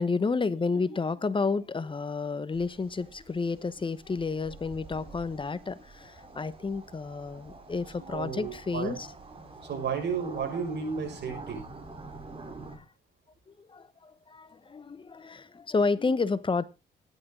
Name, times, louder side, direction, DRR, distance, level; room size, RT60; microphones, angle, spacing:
voice 1, 0.0-9.1 12.7-12.8 13.6-16.6, left 4 dB, 25° left, 1.0 m, -30 dB
sound 1, 2.5-12.8, right 3 dB, 30° right, 4.0 m, -47 dB
voice 2, 8.0-8.9 9.7-11.7, right 6 dB, 60° right, 6.0 m, -33 dB
15.0 x 10.5 x 3.7 m
cardioid pair, 90°, 20 cm